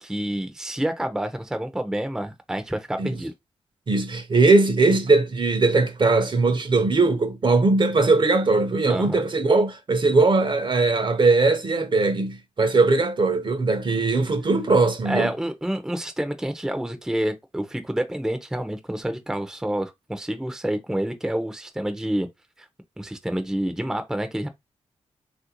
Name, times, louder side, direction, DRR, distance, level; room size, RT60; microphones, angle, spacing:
voice 1, 0.0-3.3 8.9-9.2 15.1-22.3 22.6-22.7 23.0-24.5, right 1 dB, 5° right, 0.6 m, -28 dB
voice 2, 3.9-15.3, right 3 dB, 40° right, 0.7 m, -20 dB
3.1 x 2.5 x 2.9 m
cardioid pair, 70°, 12 cm